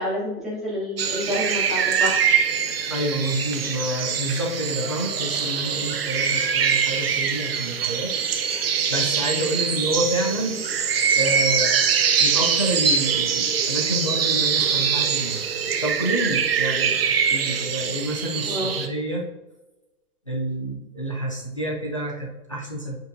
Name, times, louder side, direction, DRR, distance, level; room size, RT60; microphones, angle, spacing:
voice 1, 0.0-2.4 18.4-18.7, left 1 dB, ahead, -11 dB, 2.4 m, -28 dB
sound 1, 1.0-18.9, right 7 dB, 40° right, 0.6 m, -23 dB
voice 2, 2.9-8.2 8.9-10.6 11.1-11.8 12.2-15.4 15.8-19.2 20.3-22.9, right 1 dB, 25° left, -1 dB, 0.4 m, -28 dB
9.2 x 5.2 x 2.6 m, 1.1 s
hypercardioid pair, 160°, 46 cm